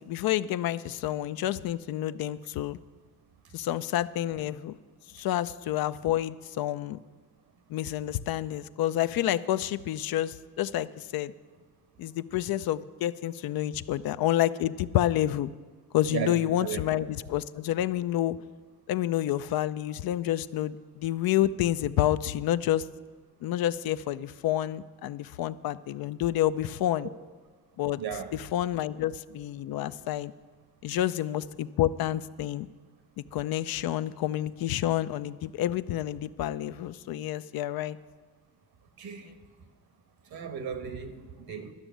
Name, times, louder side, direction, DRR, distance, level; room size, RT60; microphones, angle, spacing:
voice 1, 0.0-2.8 3.5-4.8 5.1-7.0 7.7-11.3 12.0-15.5 15.9-18.4 18.9-22.8 23.4-27.1 27.8-28.0 28.3-30.3 30.8-32.7 33.3-38.0, left 13 dB, 70° left, 0.5 m, -29 dB
voice 2, 16.1-16.8 28.0-28.4 30.9-31.0 39.0-39.3 40.3-41.7, right 7 dB, 70° right, 1.3 m, -35 dB
12.0 x 6.1 x 9.0 m
cardioid pair, 80°, 38 cm